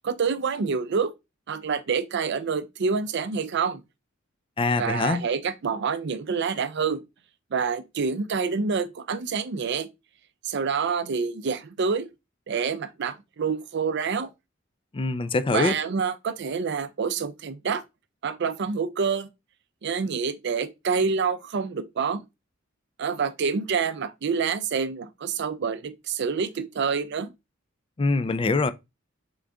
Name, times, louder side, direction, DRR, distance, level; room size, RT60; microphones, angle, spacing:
voice 1, 0.0-1.1 1.5-3.8 4.8-7.0 7.5-9.9 10.4-12.1 12.5-14.3 15.5-17.8 18.2-19.3 19.8-22.2 23.0-27.3, right 5 dB, 60° right, 0.5 m, -27 dB
voice 2, 4.6-5.2 14.9-15.8 28.0-28.7, left 3 dB, 25° left, 0.4 m, -24 dB
3.8 x 3.7 x 3.4 m
head